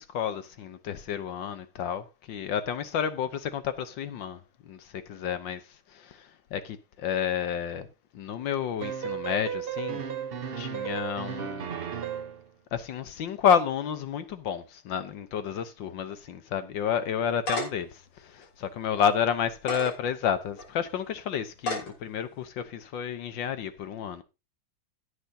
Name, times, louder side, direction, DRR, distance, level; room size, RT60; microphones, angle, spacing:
voice 1, 0.0-5.6 5.9-7.9 8.1-10.0 10.5-11.7 12.7-17.9 18.2-24.2, left 8 dB, 65° left, 1.6 m, -30 dB
sound 1, 8.8-12.4, right 8 dB, 85° right, 0.5 m, -34 dB
sound 2, 17.1-17.9 18.4-18.5 19.5-19.9 20.6-20.7 21.6-21.9, left 1 dB, 85° left, 4.1 m, -31 dB
16.0 x 8.2 x 2.8 m
omnidirectional pair, 2.3 m